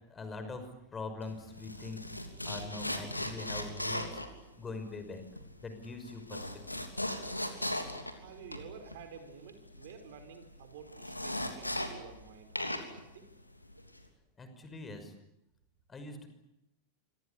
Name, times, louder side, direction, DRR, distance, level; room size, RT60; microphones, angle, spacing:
voice 1, 0.1-2.1 2.4-4.2 4.6-5.2 5.6-6.4 6.7-6.8 14.4-15.1 15.9-16.3, left 3 dB, 15° left, 8 dB, 5.7 m, -43 dB
sound 1, 1.2-12.3 12.5-14.1, left 1 dB, 85° left, 3.2 m, -38 dB
voice 2, 8.1-13.3, right 7 dB, 55° right, 8 dB, 4.8 m, -51 dB
27.5 x 25.0 x 8.4 m, 0.85 s
figure-of-eight pair, 90°, 0 cm